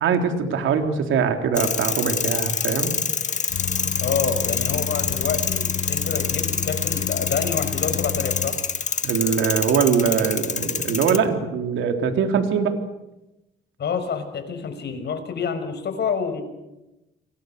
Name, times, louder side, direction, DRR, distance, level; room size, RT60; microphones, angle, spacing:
voice 1, 0.0-3.0 9.0-12.8, right 6 dB, 80° right, 5 dB, 3.7 m, -22 dB
sound 1, 1.5-11.2, left 5 dB, 35° left, 2.0 m, -26 dB
sound 2, 3.5-8.5, left 7 dB, 85° left, 6.4 m, -31 dB
voice 2, 4.0-8.6 13.8-16.4, left 6 dB, 60° left, 8 dB, 5.9 m, -28 dB
29.5 x 24.0 x 6.8 m, 0.96 s
cardioid pair, 90°, 20 cm